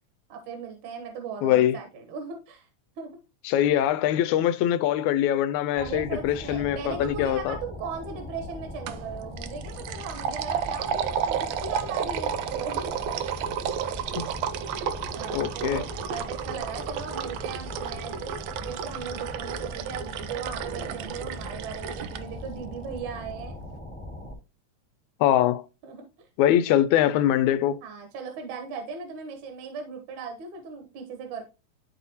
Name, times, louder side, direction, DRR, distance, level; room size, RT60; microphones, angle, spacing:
voice 1, 0.3-2.7 3.0-3.1 5.7-12.9 15.1-18.3 18.6-23.6 25.8-26.3 26.7-26.8 27.8-31.4, right 5 dB, 70° right, 2.4 m, -38 dB
voice 2, 1.4-1.8 3.5-7.6 14.2-14.3 15.3-15.8 25.2-25.6 26.4-27.8, left 11 dB, 80° left, 1.9 m, -23 dB
sound 1, 5.8-24.3, left 1 dB, 5° left, 1.1 m, -40 dB
sound 2, 8.9-9.1 9.4-22.2, right 8 dB, 90° right, 1.4 m, -32 dB
12.0 x 4.1 x 2.8 m
omnidirectional pair, 3.6 m